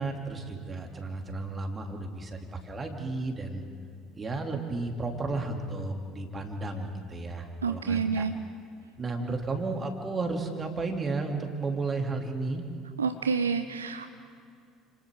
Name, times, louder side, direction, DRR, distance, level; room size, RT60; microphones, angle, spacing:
voice 1, 0.0-3.6 4.1-8.2 9.0-12.6, right 3 dB, 25° right, 3 dB, 3.1 m, -33 dB
voice 2, 7.6-8.4 9.2-9.3 13.0-14.1, right 5 dB, 80° right, 8 dB, 0.7 m, -29 dB
30.0 x 27.5 x 3.9 m, 2.3 s
figure-of-eight pair, 60°, 0 cm